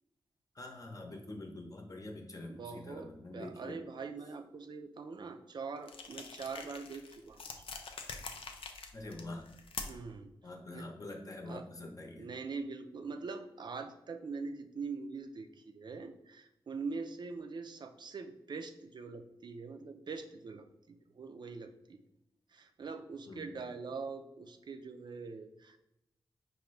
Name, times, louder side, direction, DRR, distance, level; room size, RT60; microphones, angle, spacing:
voice 1, 0.5-3.8 8.9-9.5 10.4-12.3 23.3-23.5, left 2 dB, 40° left, 2 dB, 0.8 m, -45 dB
voice 2, 2.5-7.5 9.8-10.3 10.7-10.9 11.5-11.7 12.2-22.0 22.5-25.8, right 4 dB, 55° right, 7 dB, 0.4 m, -43 dB
sound 1, 5.8-10.1, left 4 dB, 85° left, 0.5 m, -45 dB
4.9 x 2.6 x 3.2 m, 0.85 s
wide cardioid pair, 85°, 9 cm